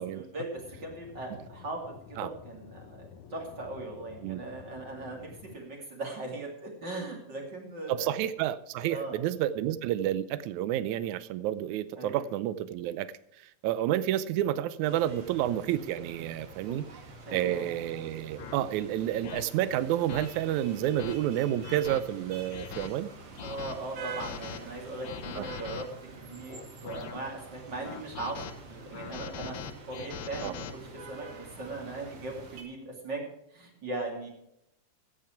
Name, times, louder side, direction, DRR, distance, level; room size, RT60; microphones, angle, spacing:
voice 1, 0.0-8.2 8.9-9.2 11.9-12.3 17.2-17.6 23.4-25.9 26.2-29.6 29.9-33.2 33.5-34.3, right 2 dB, 35° right, 0 dB, 3.2 m, -39 dB
Aircraft / Engine, 0.6-5.6, left 7 dB, 70° left, 2.0 m, -50 dB
voice 2, 7.9-13.1 13.6-16.8 17.3-23.1 25.4-25.5 30.4-30.5, right 12 dB, 80° right, 15 dB, 2.0 m, -30 dB
sound 1, 14.8-32.6, right 4 dB, 55° right, 3.0 m, -47 dB
sound 2, 16.7-16.8 17.5-17.7 18.4-18.5 19.2-19.4 20.1-20.3 20.8-21.1 21.6-22.0 22.5-22.9 23.4-23.7 24.2-24.6 25.0-25.8 26.5-27.2 27.8-28.5 28.9-30.7, left 8 dB, 90° left, 1.0 m, -41 dB
14.5 x 8.7 x 4.6 m, 0.80 s
omnidirectional pair, 3.5 m